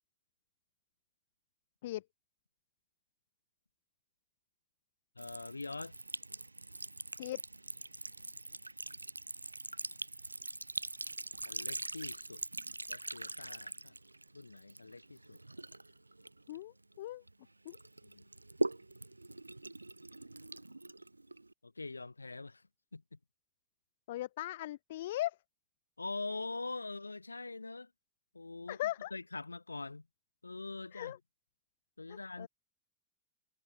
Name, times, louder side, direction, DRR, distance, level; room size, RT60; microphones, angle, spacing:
voice 1, 5.2-6.0 11.4-12.4 12.9-13.9 14.3-15.4 18.0-18.2 21.6-22.6 22.9-23.0 26.0-27.9 28.3-28.8 29.1-30.1 30.4-31.1 32.0-32.5, left 3 dB, 80° left, 2.7 m, -43 dB
Sink (filling or washing) / Trickle dribble, 5.2-17.3 17.7-21.5, right 2 dB, 85° right, 0.4 m, -42 dB
voice 2, 16.5-17.2 17.6-17.8 24.1-25.4 28.7-29.1 30.9-31.2 32.1-32.5, left 14 dB, 55° left, 0.9 m, -39 dB
figure-of-eight pair, 90°, 0 cm